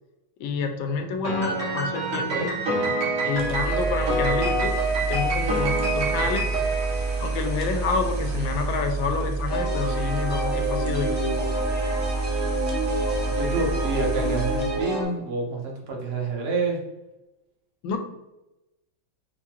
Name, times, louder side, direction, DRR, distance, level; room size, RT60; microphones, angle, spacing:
voice 1, 0.4-2.5 2.8-3.0 3.2-4.8 5.1-6.5 7.2-11.4 17.8-18.0, left 4 dB, 80° left, 6 dB, 1.3 m, -28 dB
Piano, 1.2-7.8, right 2 dB, 65° right, 1.6 m, -26 dB
voice 2, 2.1-2.5 9.1-9.3 13.3-16.8, right 3 dB, 45° right, -1 dB, 0.8 m, -28 dB
sound 1, 3.3-14.8, right 3 dB, 80° right, 0.7 m, -29 dB
sound 2, 9.5-15.0, right 1 dB, 30° right, 1.4 m, -29 dB
4.6 x 2.3 x 2.9 m, 0.97 s
omnidirectional pair, 2.1 m